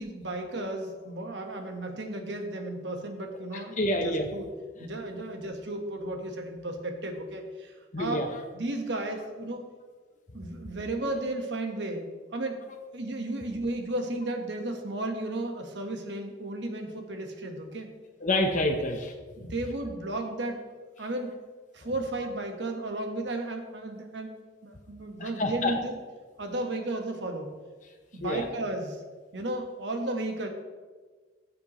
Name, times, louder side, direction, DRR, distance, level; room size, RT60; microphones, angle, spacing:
voice 1, 0.0-3.8 4.0-4.5 4.8-8.2 8.5-9.7 10.3-12.7 12.9-17.9 19.4-20.7 21.0-21.4 21.7-24.3 24.6-25.9 26.4-27.5 28.1-29.0 29.3-30.5, right 2 dB, 70° right, 4 dB, 1.4 m, -34 dB
voice 2, 3.5-4.3 4.8-4.9 7.9-8.4 18.2-19.1 19.6-19.7 21.8-22.3 25.2-25.8 28.2-28.5, left 1 dB, 45° left, 2 dB, 0.9 m, -29 dB
15.5 x 7.0 x 3.1 m, 1.4 s
head